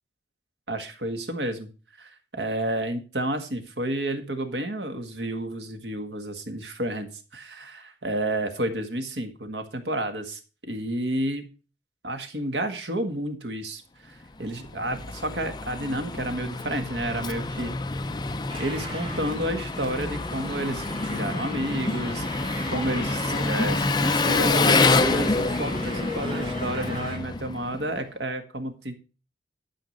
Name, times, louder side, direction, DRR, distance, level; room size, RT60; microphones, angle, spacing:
voice 1, 0.7-1.7 2.0-11.5 12.0-17.7 18.6-29.0, right 1 dB, 80° right, 7 dB, 1.8 m, -31 dB
Engine, 14.4-28.0, left 3 dB, 25° left, 0.5 m, -27 dB
sound 1, 18.5-27.2, equal, 30° right, 3.2 m, -38 dB
12.0 x 5.0 x 6.6 m, 0.35 s
head